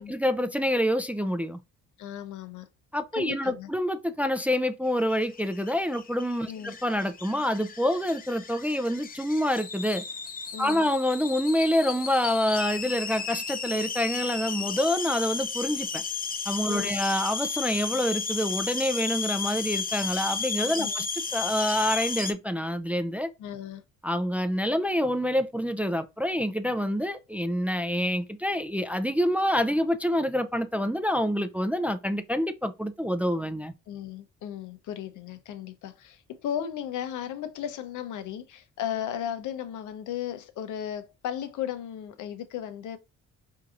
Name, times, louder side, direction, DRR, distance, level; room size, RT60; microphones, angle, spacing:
voice 1, 0.0-1.6 2.9-10.0 10.6-16.0 16.5-21.1 21.3-23.3 24.0-33.7, equal, 5° right, 0.3 m, -27 dB
voice 2, 2.0-2.7 3.1-3.7 6.4-6.7 10.5-10.8 16.7-17.0 20.8-21.0 23.4-23.8 33.9-43.0, left 10 dB, 80° left, 0.7 m, -35 dB
sound 1, 5.0-22.3, left 5 dB, 30° left, 0.7 m, -34 dB
4.5 x 2.7 x 2.5 m
cardioid pair, 90°, 30 cm